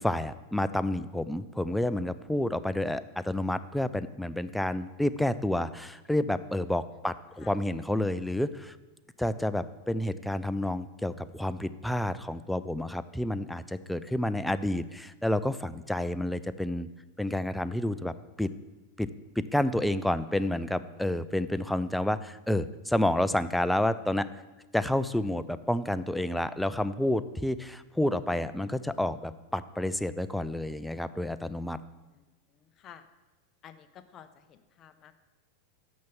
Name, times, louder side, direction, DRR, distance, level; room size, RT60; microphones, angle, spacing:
voice 1, 0.0-8.7 9.2-16.9 17.2-18.1 18.4-18.5 19.0-19.1 19.4-24.3 24.7-31.8, left 1 dB, 5° left, 13 dB, 0.3 m, -29 dB
voice 2, 32.5-33.1 33.6-35.1, left 9 dB, 35° left, 10 dB, 0.6 m, -52 dB
6.4 x 5.8 x 6.9 m, 1.2 s
hypercardioid pair, 125°, 0 cm